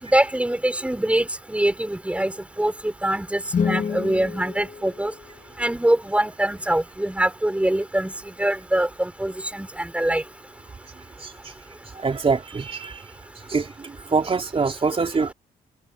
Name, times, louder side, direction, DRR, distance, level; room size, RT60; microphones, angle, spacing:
voice 1, 0.0-2.3 2.6-5.1 5.6-8.1 8.4-10.2, right 1 dB, 10° right, 5.0 m, -23 dB
sound 1, 3.4-5.7, left 6 dB, 50° left, 2.7 m, -28 dB
voice 2, 11.9-13.0 13.5-15.3, right 4 dB, 35° right, 4.2 m, -24 dB
cardioid pair, 75°, 16 cm